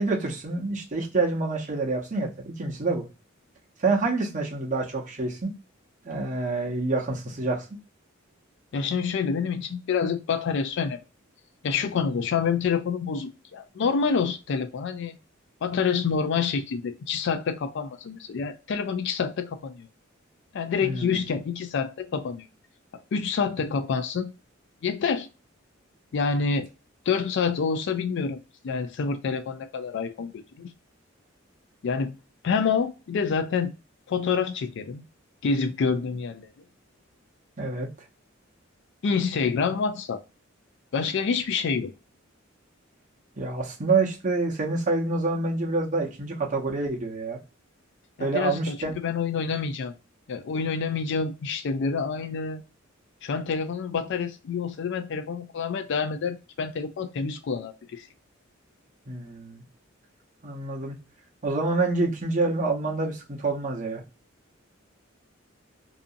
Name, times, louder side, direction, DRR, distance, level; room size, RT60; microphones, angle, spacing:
voice 1, 0.0-3.0 3.8-5.5 6.0-7.6 20.8-21.2 37.6-37.9 43.4-47.4 48.2-48.9 59.1-59.6 60.4-61.0 61.4-64.0, right 3 dB, 40° right, 0.7 m, -27 dB
voice 2, 8.7-11.0 11.6-15.2 15.6-19.9 20.5-22.5 23.1-24.3 24.8-25.3 26.1-26.7 27.1-28.4 28.6-30.7 31.8-32.1 32.4-33.7 34.1-35.0 35.4-36.5 39.0-40.2 40.9-41.9 48.2-49.9 50.3-52.6 53.2-58.1, left 5 dB, 60° left, 0.4 m, -27 dB
2.7 x 2.5 x 2.4 m
head